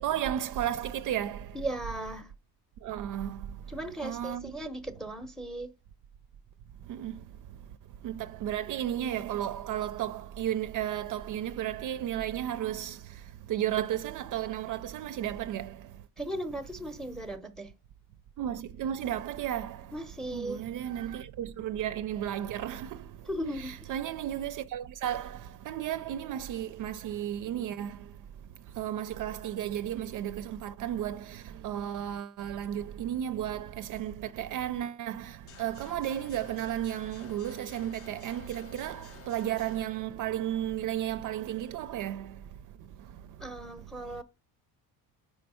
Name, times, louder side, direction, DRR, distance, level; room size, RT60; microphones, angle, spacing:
voice 1, 0.0-1.6 2.8-3.6 4.0-4.5 6.9-7.2 8.0-16.0 18.4-20.0 20.3-23.2 23.5-28.1 28.7-42.4 43.0-43.2, right 11 dB, 50° right, 0.4 m, -34 dB
voice 2, 1.5-2.3 3.7-5.7 16.2-17.7 19.9-20.6 23.3-23.8 43.4-44.2, right 1 dB, ahead, 0.7 m, -37 dB
sound 1, 35.5-39.9, left 6 dB, 35° left, 0.6 m, -51 dB
4.8 x 4.2 x 5.5 m
cardioid pair, 135°, 40 cm